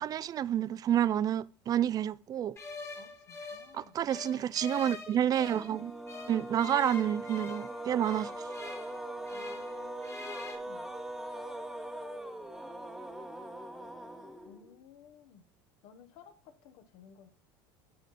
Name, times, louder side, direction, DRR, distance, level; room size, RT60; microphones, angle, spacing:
voice 1, 0.0-2.6 3.7-5.9 6.3-8.5, right 10 dB, 35° right, 0.3 m, -29 dB
sound 1, 2.6-5.7 6.1-9.7 10.0-10.6, left 4 dB, 25° left, 1.5 m, -44 dB
voice 2, 2.9-4.0 9.3-10.9 14.4-15.4 15.8-17.3, left 7 dB, 70° left, 1.2 m, -57 dB
sound 2, 5.4-14.8, right 1 dB, ahead, 0.9 m, -41 dB
9.2 x 4.0 x 4.2 m
supercardioid pair, 95°, 12 cm